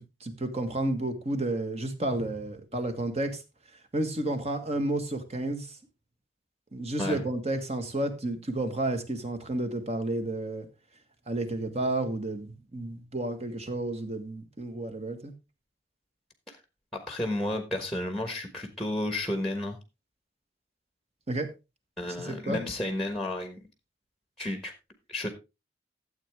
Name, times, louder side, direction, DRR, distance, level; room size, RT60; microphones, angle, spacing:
voice 1, 0.0-3.4 3.9-5.8 6.7-10.7 11.3-15.3 21.3-21.5 22.1-22.6, right 1 dB, 35° right, 1.5 m, -31 dB
voice 2, 16.9-19.8 22.0-23.6 24.4-24.7 25.1-25.3, left 1 dB, ahead, 1.3 m, -32 dB
13.0 x 7.9 x 3.5 m
head